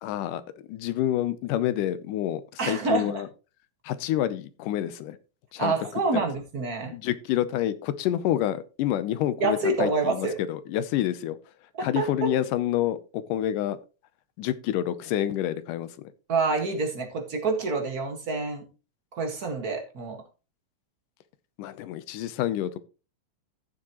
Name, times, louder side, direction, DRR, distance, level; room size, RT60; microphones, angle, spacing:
voice 1, 0.0-0.4 0.7-3.3 3.8-5.2 5.5-5.7 6.1-6.3 6.9-11.4 11.8-13.8 14.4-16.1 21.6-22.8, left 12 dB, 75° left, 14 dB, 2.3 m, -28 dB
voice 2, 2.6-3.2 5.6-6.9 9.4-10.3 11.7-12.1 16.3-18.6 19.1-20.2, right 3 dB, 40° right, 3 dB, 1.5 m, -27 dB
15.0 x 7.2 x 3.0 m, 0.32 s
omnidirectional pair, 3.9 m